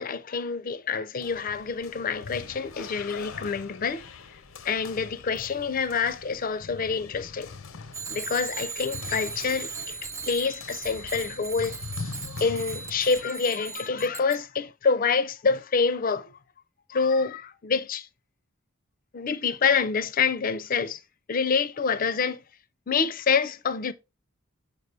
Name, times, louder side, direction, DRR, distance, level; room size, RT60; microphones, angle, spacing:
voice 1, 0.0-4.1 4.6-7.5 8.1-11.8 12.4-16.4 16.9-18.1 19.1-21.0 21.3-22.4 22.9-23.9, left 5 dB, 45° left, 0.5 m, -27 dB
sound 1, 1.2-13.2, left 4 dB, 90° left, 0.7 m, -42 dB
Bicycle bell, 7.9-14.4, right 5 dB, 15° right, 0.3 m, -38 dB
6.7 x 4.7 x 3.2 m
head